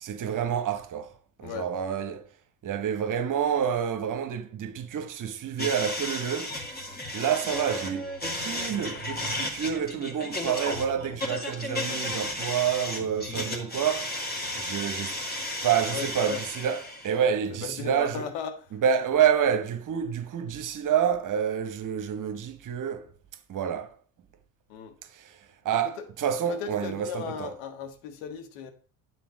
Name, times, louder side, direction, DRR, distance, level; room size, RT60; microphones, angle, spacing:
voice 1, 0.0-1.1 1.4-2.3 2.6-6.6 7.1-8.1 8.4-14.2 14.6-15.2 15.6-18.2 18.7-23.1 23.5-23.9 25.1-25.4 25.6-27.5, right 8 dB, 45° right, 1.2 m, -28 dB
sound 1, 5.6-17.2, left 1 dB, 20° left, 2.3 m, -34 dB
voice 2, 15.9-16.4 17.5-18.8 24.7-25.0 25.7-26.0 26.5-28.7, left 7 dB, 65° left, 1.6 m, -36 dB
9.2 x 4.3 x 6.2 m
hypercardioid pair, 60°, 45 cm